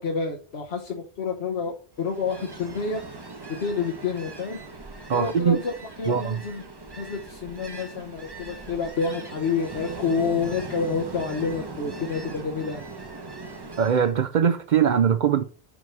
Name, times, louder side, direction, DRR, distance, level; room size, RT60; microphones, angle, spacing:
voice 1, 0.0-3.3 3.6-4.6 5.1-6.6 7.0-12.8, left 5 dB, 75° left, 1.3 m, -29 dB
Ocean, 2.0-14.2, right 3 dB, 25° right, 0.9 m, -39 dB
voice 2, 5.1-5.6 6.1-6.4 13.8-15.4, right 7 dB, 55° right, 0.6 m, -21 dB
6.0 x 4.6 x 6.0 m
omnidirectional pair, 1.1 m